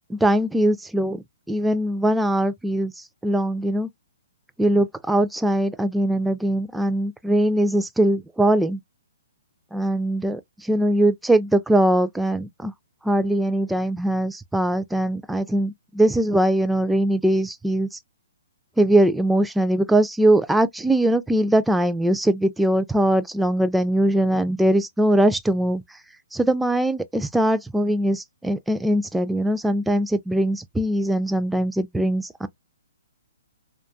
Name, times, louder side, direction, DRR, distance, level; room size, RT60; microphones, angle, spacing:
voice 1, 0.1-2.9 3.2-3.9 4.6-8.8 9.7-12.7 13.0-17.9 18.8-25.8 26.3-32.5, right 1 dB, 5° right, 0.3 m, -21 dB
2.5 x 2.3 x 2.4 m
hypercardioid pair, 135°, 0 cm